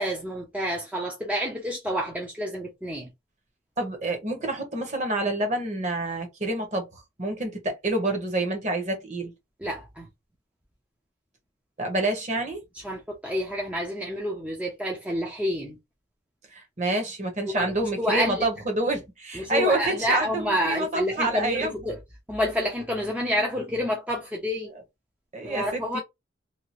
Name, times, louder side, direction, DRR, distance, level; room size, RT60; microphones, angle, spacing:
voice 1, 0.0-3.1 9.6-10.1 12.7-15.8 17.5-18.5 19.3-22.0 22.3-24.7 25.4-26.0, equal, 5° right, 0.4 m, -28 dB
voice 2, 3.8-9.3 11.8-12.6 16.5-21.8 25.3-26.0, right 2 dB, 35° right, 0.9 m, -28 dB
2.7 x 2.3 x 2.9 m
head